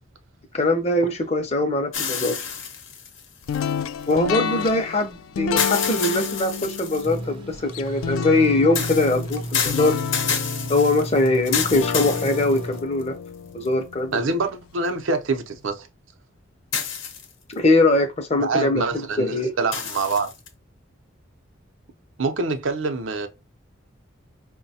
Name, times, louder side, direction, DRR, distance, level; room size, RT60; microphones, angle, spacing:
voice 1, 0.5-2.4 4.1-10.0 10.7-13.1 13.5-14.2 17.5-19.5, left 2 dB, 30° left, 0.5 m, -22 dB
sound 1, 1.9-4.1 5.6-7.2 8.8-13.0 13.7-13.8 16.7-17.5 19.7-20.5, left 7 dB, 70° left, 0.8 m, -29 dB
sound 2, 3.5-14.5, left 7 dB, 85° left, 0.3 m, -31 dB
sound 3, 7.0-12.8, right 1 dB, 25° right, 0.4 m, -33 dB
voice 2, 14.1-15.9 18.4-20.3 22.2-23.3, right 3 dB, 75° right, 0.6 m, -25 dB
4.6 x 2.2 x 2.7 m
head